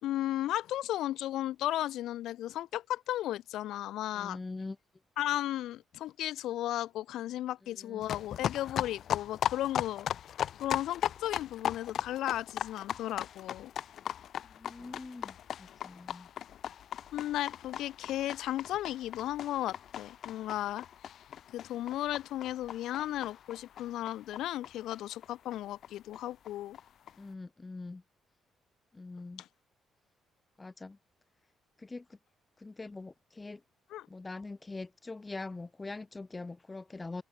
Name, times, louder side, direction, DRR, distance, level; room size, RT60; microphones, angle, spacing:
voice 1, 0.0-4.4 5.2-10.1 10.6-13.7 17.1-20.8 21.5-26.8 29.4-29.5 33.9-34.1, left 13 dB, 85° left, 1.8 m, -35 dB
voice 2, 4.1-4.8 7.8-8.0 14.6-16.3 27.2-28.0 28.9-29.4 30.6-31.0 31.8-32.0 32.6-33.6 34.1-37.2, left 3 dB, 20° left, 2.9 m, -43 dB
sound 1, 8.0-25.3 25.5-25.6 25.8-25.9 26.1-26.2 26.4-27.1, left 10 dB, 65° left, 3.5 m, -38 dB
cardioid pair, 90°, 0 cm